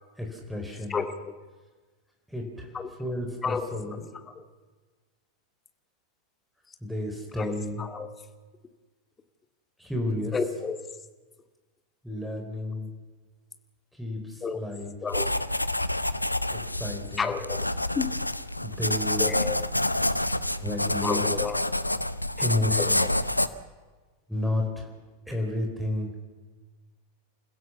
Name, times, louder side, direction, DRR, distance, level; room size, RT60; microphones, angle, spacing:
voice 1, 0.2-1.0 2.3-2.7 3.0-4.0 6.8-7.8 9.8-10.3 12.0-12.9 13.9-14.9 16.5-17.3 18.6-19.3 20.6-21.2 22.4-23.0 24.3-24.9 25.3-26.2, left 1 dB, ahead, 1 dB, 4.6 m, -31 dB
voice 2, 0.9-1.4 2.7-2.9 3.4-3.7 7.4-7.5 7.8-8.1 10.3-10.8 14.4-14.6 15.0-15.3 17.2-17.7 18.0-18.1 19.2-19.6 21.0-21.6 22.8-23.1, left 5 dB, 20° left, 7 dB, 2.0 m, -30 dB
sound 1, 15.1-23.5, left 1 dB, 85° left, 0.8 m, -28 dB
29.0 x 16.0 x 7.2 m, 1.3 s
figure-of-eight pair, 90°, 0 cm